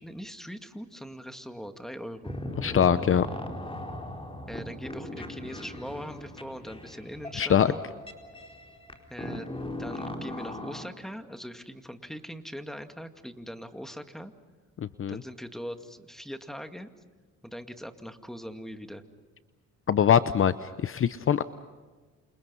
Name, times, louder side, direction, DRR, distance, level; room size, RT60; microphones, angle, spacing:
voice 1, 0.0-2.4 4.5-7.8 9.1-9.5 9.8-14.3 15.1-16.9 17.4-19.0, equal, ahead, 7 dB, 2.2 m, -41 dB
sound 1, 2.2-10.8, left 1 dB, 20° left, 4.2 m, -39 dB
voice 2, 2.6-3.3 7.4-7.7 15.0-15.2 19.9-21.4, left 8 dB, 45° left, 13 dB, 0.8 m, -23 dB
29.0 x 28.0 x 5.6 m, 1.4 s
cardioid pair, 90°, 30 cm